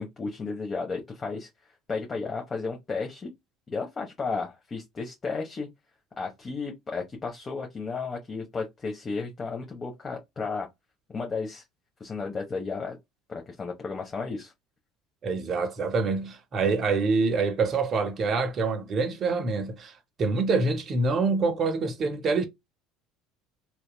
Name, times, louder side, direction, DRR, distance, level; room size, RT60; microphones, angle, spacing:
voice 1, 0.0-1.5 1.9-3.3 3.7-5.7 6.2-10.7 11.1-11.6 12.0-13.0 13.3-14.5, left 4 dB, 30° left, 0.8 m, -33 dB
voice 2, 15.2-19.9 20.2-22.5, right 4 dB, 40° right, 0.6 m, -26 dB
2.8 x 2.2 x 2.2 m
hypercardioid pair, 75°, 0 cm